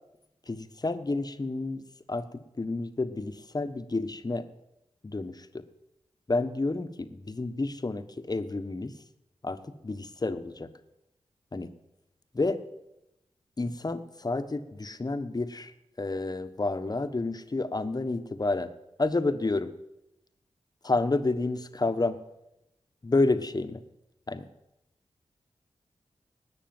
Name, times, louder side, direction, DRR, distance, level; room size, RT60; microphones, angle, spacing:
voice 1, 0.5-4.5 5.0-5.6 6.3-8.9 9.4-10.7 11.5-11.7 12.3-12.6 13.6-15.7 16.0-18.7 19.0-19.7 20.8-22.2 23.0-23.8 24.3-24.5, left 3 dB, 35° left, 10 dB, 1.3 m, -30 dB
19.0 x 6.6 x 9.0 m, 0.89 s
cardioid pair, 45°, 11 cm